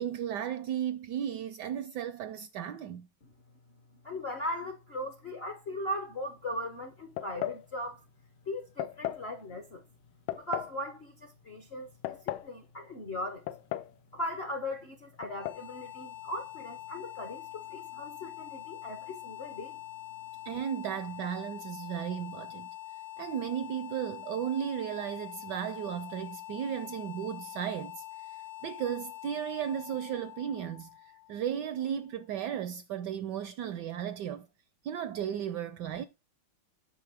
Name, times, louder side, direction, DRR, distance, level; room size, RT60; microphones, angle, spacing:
voice 1, 0.0-3.1 20.5-22.7 23.2-28.0 28.6-34.5 34.8-36.0, right 9 dB, 75° right, 1.0 m, -35 dB
voice 2, 4.0-8.0 8.5-9.8 10.4-13.4 14.1-19.8, left 1 dB, 55° left, 0.7 m, -38 dB
sound 1, 7.2-7.7 8.8-9.3 10.3-10.8 11.8-12.5 13.5-14.0 14.2-14.3 15.2-15.6, left 13 dB, 90° left, 1.5 m, -36 dB
sound 2, 15.2-32.1, left 15 dB, 75° left, 2.3 m, -45 dB
9.5 x 6.0 x 3.4 m
omnidirectional pair, 2.3 m